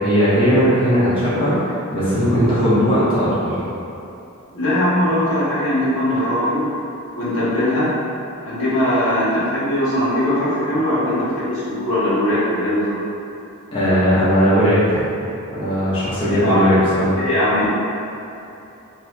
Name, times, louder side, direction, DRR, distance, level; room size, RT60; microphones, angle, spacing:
voice 1, 0.0-3.6 13.7-15.1 15.5-17.2, equal, 25° left, -12 dB, 0.7 m, -17 dB
voice 2, 4.5-6.7 7.2-7.9 8.4-13.0 16.3-16.6 17.2-17.7, left 1 dB, 70° left, -11 dB, 1.1 m, -20 dB
2.7 x 2.6 x 3.2 m, 2.9 s
head